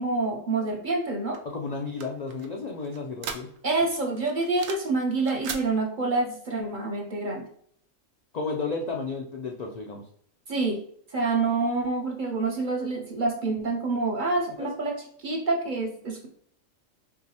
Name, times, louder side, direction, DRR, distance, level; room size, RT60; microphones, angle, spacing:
voice 1, 0.0-1.4 3.6-7.5 10.5-10.8 11.1-16.3, right 3 dB, 50° right, 2 dB, 0.6 m, -27 dB
sound 1, 1.3-3.8 4.2-4.9 5.2-5.7, right 6 dB, 80° right, 1.0 m, -38 dB
voice 2, 1.4-3.5 8.3-10.1 14.6-14.7, left 4 dB, 80° left, 1 dB, 0.3 m, -32 dB
4.6 x 3.0 x 2.8 m, 0.63 s
omnidirectional pair, 1.3 m